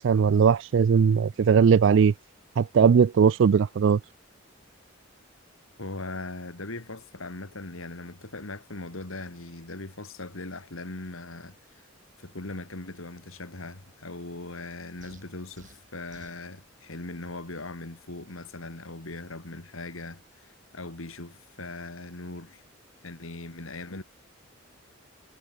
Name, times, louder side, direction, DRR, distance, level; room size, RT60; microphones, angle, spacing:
voice 1, 0.0-2.1 2.6-4.0, right 6 dB, 60° right, 0.3 m, -19 dB
voice 2, 5.8-11.9 12.2-22.6 23.0-24.0, left 2 dB, 75° left, 2.5 m, -40 dB
sound 1, 15.0-16.5, right 2 dB, 35° right, 5.1 m, -53 dB
head